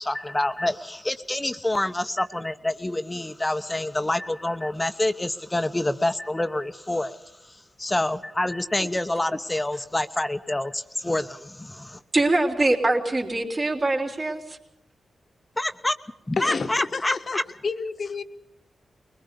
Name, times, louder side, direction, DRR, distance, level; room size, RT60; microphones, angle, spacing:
voice 1, 0.0-12.0 15.6-16.0 16.3-17.4, left 1 dB, 20° left, 9 dB, 1.1 m, -27 dB
voice 2, 12.1-14.4, right 2 dB, 45° right, 2 dB, 3.7 m, -23 dB
voice 3, 16.4-18.2, left 4 dB, 55° left, 9 dB, 1.4 m, -30 dB
21.0 x 20.5 x 6.9 m, 0.89 s
supercardioid pair, 40°, 0 cm